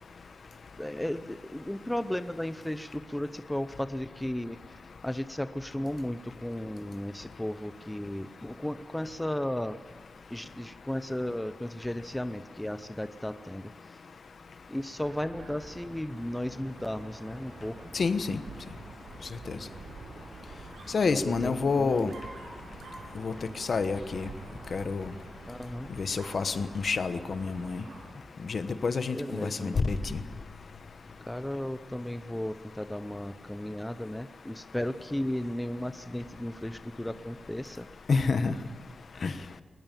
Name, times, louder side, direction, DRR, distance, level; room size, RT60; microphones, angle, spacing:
voice 1, 0.8-4.8 5.0-9.8 10.3-13.7 14.7-17.9 21.1-22.1 25.5-25.9 29.1-29.9 31.3-37.9, left 1 dB, 5° left, 11 dB, 0.7 m, -35 dB
Dog, 14.9-28.2, right 3 dB, 80° right, 7.3 m, -47 dB
voice 2, 17.9-18.4 19.5-19.6 20.9-22.1 23.2-24.3 24.7-25.1 26.0-27.8 28.5-30.2 38.1-38.5 39.2-39.3, left 4 dB, 50° left, 12 dB, 1.2 m, -28 dB
21.5 x 20.5 x 9.2 m, 1.3 s
wide cardioid pair, 170°, 0 cm